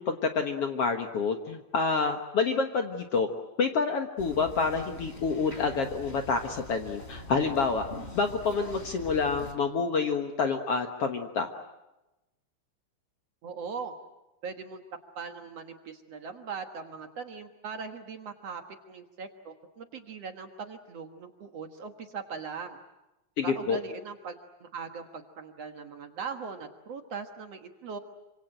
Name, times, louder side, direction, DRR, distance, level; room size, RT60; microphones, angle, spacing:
voice 1, 0.0-3.3 3.6-7.8 8.2-11.5 23.4-23.8, left 4 dB, 55° left, 5 dB, 1.9 m, -28 dB
sound 1, 4.2-9.5, left 1 dB, 15° left, 3.8 m, -43 dB
voice 2, 13.4-13.9 14.4-14.8 15.2-18.6 18.9-22.8 23.4-28.0, right 5 dB, 55° right, 5 dB, 2.2 m, -40 dB
28.0 x 26.0 x 7.8 m, 0.98 s
omnidirectional pair, 4.0 m